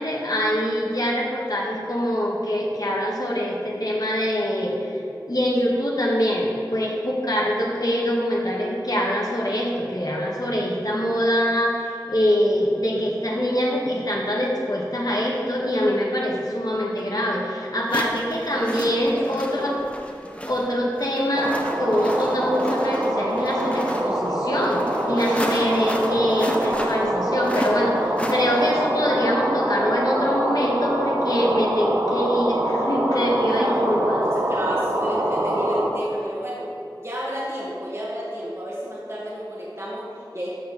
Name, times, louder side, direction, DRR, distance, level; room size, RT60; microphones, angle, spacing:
voice 1, 0.0-4.7 5.2-19.7 20.5-34.2, equal, 55° left, -3 dB, 1.7 m, -24 dB
sound 1, 17.0-17.1 17.9-29.0, equal, 15° left, 1.0 m, -34 dB
voice 2, 18.5-19.8 33.1-33.8 34.1-36.7 37.0-40.5, equal, 35° right, -7 dB, 2.1 m, -32 dB
sound 2, 21.3-35.9, right 1 dB, 60° right, 1.5 m, -25 dB
13.0 x 4.6 x 6.8 m, 2.7 s
wide cardioid pair, 40°, 8 cm